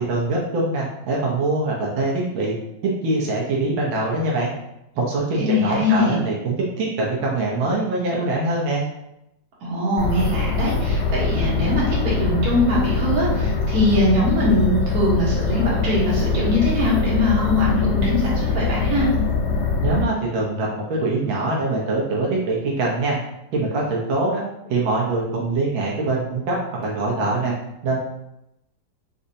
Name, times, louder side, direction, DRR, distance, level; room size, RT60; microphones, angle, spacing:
voice 1, 0.0-2.5 2.8-4.5 4.9-8.8 19.8-23.2 23.5-24.4 24.7-27.5 27.8-28.0, right 2 dB, 85° right, -4 dB, 1.5 m, -23 dB
voice 2, 5.4-6.2 9.6-19.1, left 1 dB, 60° right, -7 dB, 1.3 m, -22 dB
sound 1, 10.0-20.0, left 4 dB, 80° left, 1.4 m, -23 dB
4.1 x 2.6 x 2.6 m, 0.84 s
omnidirectional pair, 2.1 m